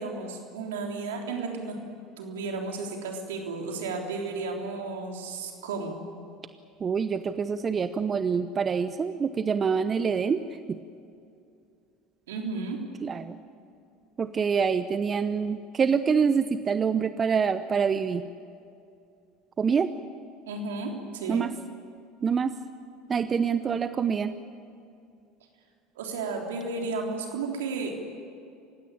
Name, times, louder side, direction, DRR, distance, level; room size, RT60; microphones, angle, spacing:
voice 1, 0.0-1.8 2.2-6.0 12.3-12.8 20.5-21.4 26.0-28.0, right 3 dB, 75° right, 2 dB, 3.6 m, -33 dB
voice 2, 6.8-10.4 10.7-10.8 13.0-13.4 14.2-18.2 19.6-19.9 21.3-21.5 22.2-22.5 23.1-24.3, right 6 dB, 30° right, 12 dB, 0.9 m, -26 dB
28.5 x 16.5 x 8.9 m, 2.5 s
hypercardioid pair, 75°, 0 cm